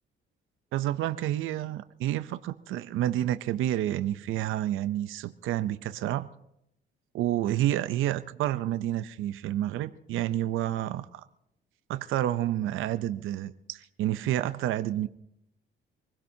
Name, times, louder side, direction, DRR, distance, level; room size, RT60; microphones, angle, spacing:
voice 1, 0.7-6.3 7.1-11.2 11.9-15.1, right 13 dB, 85° right, 13 dB, 0.7 m, -29 dB
26.5 x 16.5 x 2.8 m, 0.79 s
cardioid pair, 90°, 20 cm